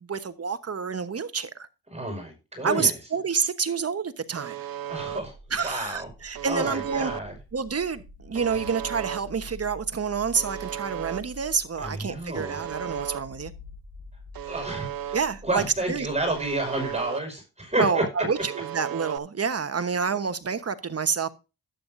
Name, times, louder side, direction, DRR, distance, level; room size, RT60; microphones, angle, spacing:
voice 1, 0.0-1.7 2.6-4.7 5.5-7.1 7.5-13.5 15.1-16.3 17.8-21.3, right 6 dB, 45° right, 1.1 m, -28 dB
voice 2, 1.9-2.9 4.9-5.3 5.6-7.3 11.8-12.6 14.4-15.2 15.4-18.0, right 1 dB, 20° right, 5.4 m, -30 dB
Alarm, 4.3-5.2 6.3-7.2 8.3-9.2 10.3-11.2 12.3-13.2 14.3-15.2 16.3-17.2 18.3-19.2, right 11 dB, 75° right, 0.7 m, -35 dB
sound 1, 4.9-17.0, left 1 dB, 75° left, 4.6 m, -47 dB
12.0 x 9.1 x 2.6 m
cardioid pair, 65°, 36 cm